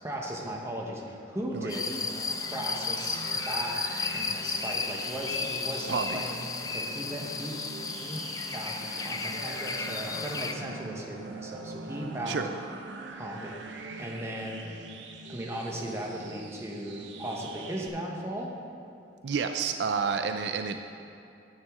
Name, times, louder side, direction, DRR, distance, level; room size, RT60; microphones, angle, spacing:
voice 1, 0.0-2.0 2.4-7.5 8.0-8.2 8.5-12.4 13.1-13.5 14.0-14.7 15.3-18.5, right 1 dB, 15° right, -1 dB, 1.1 m, -37 dB
sound 1, 1.7-10.5, left 4 dB, 20° left, 0.4 m, -34 dB
sound 2, 1.9-17.9, right 3 dB, 90° right, 0.8 m, -43 dB
voice 2, 5.9-6.2 12.3-12.5 19.2-20.8, right 5 dB, 70° right, 7 dB, 0.4 m, -29 dB
10.5 x 9.3 x 3.7 m, 2.6 s
head